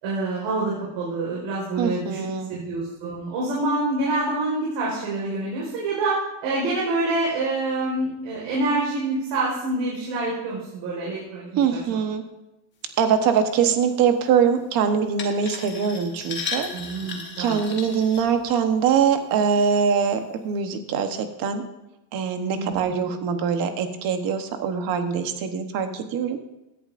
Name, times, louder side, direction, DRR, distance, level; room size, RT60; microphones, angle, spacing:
voice 1, 0.0-2.2 2.5-12.0 16.7-17.6 22.5-22.9, right 2 dB, 65° right, -5 dB, 4.6 m, -27 dB
voice 2, 1.8-2.6 11.6-12.2 13.0-16.7 17.4-21.6 22.1-26.4, right 7 dB, 45° right, 7 dB, 1.1 m, -23 dB
sound 1, 15.2-18.8 19.3-19.7 20.2-20.3, left 4 dB, 25° left, 1.3 m, -35 dB
17.0 x 11.0 x 2.6 m, 0.95 s
cardioid pair, 180°, 48 cm